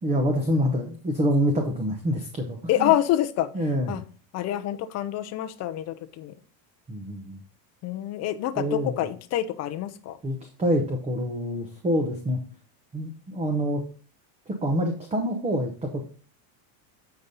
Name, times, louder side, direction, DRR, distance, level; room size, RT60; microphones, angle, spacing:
voice 1, 0.0-2.9 3.5-4.0 6.9-7.4 8.6-9.1 10.2-12.4 12.9-13.8 14.5-16.0, equal, 15° right, 4 dB, 0.8 m, -26 dB
voice 2, 2.7-3.5 3.9-4.0 4.3-6.4 7.8-10.2, left 13 dB, 35° left, 10 dB, 0.6 m, -27 dB
8.1 x 5.2 x 4.0 m, 0.39 s
cardioid pair, 155°, 49 cm